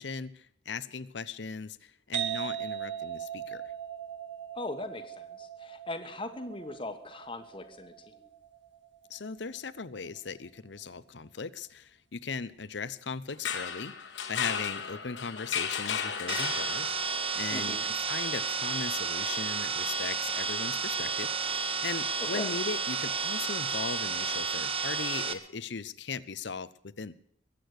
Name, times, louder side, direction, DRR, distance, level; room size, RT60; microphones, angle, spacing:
voice 1, 0.0-3.6 9.1-16.9 17.3-17.8 18.1-27.1, left 4 dB, 70° left, 16 dB, 0.8 m, -38 dB
sound 1, 2.1-9.6, right 10 dB, 85° right, 2.1 m, -39 dB
voice 2, 4.5-8.3 17.5-17.9 22.2-22.5, left 2 dB, 30° left, 6 dB, 1.4 m, -40 dB
sound 2, 13.3-17.2, left 7 dB, 85° left, 2.2 m, -34 dB
sound 3, 16.3-25.3, right 5 dB, 30° right, 1.3 m, -31 dB
22.5 x 8.6 x 6.6 m, 0.66 s
head